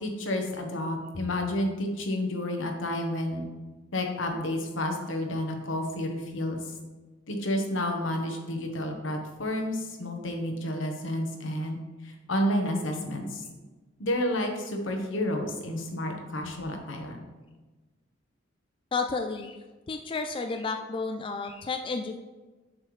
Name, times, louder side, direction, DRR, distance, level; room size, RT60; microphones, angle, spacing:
voice 1, 0.0-3.4 3.9-6.6 7.3-11.8 12.0-13.4 14.0-17.2, left 1 dB, 75° left, 3 dB, 1.1 m, -30 dB
voice 2, 18.9-19.6 19.9-22.2, left 4 dB, 25° left, 5 dB, 0.3 m, -31 dB
7.4 x 6.6 x 3.2 m, 1.2 s
head